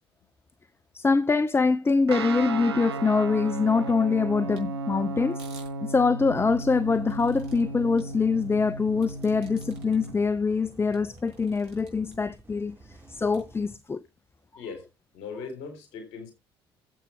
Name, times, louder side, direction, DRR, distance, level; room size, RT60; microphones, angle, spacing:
voice 1, 0.9-5.4 5.8-14.0, left 4 dB, 20° left, 0.6 m, -24 dB
Guitar, 2.1-10.1, right 3 dB, 85° right, 0.7 m, -34 dB
sound 1, 4.5-4.6 5.3-5.7 6.6-7.6 8.0-8.1 9.0-10.1 10.5-10.6 10.9-12.2 13.3-13.4, right 5 dB, 65° right, 5.3 m, -52 dB
sound 2, 6.2-13.8, right 2 dB, 15° right, 4.3 m, -51 dB
voice 2, 15.1-16.3, left 5 dB, 65° left, 3.8 m, -39 dB
11.5 x 8.1 x 4.7 m
figure-of-eight pair, 55°, 13 cm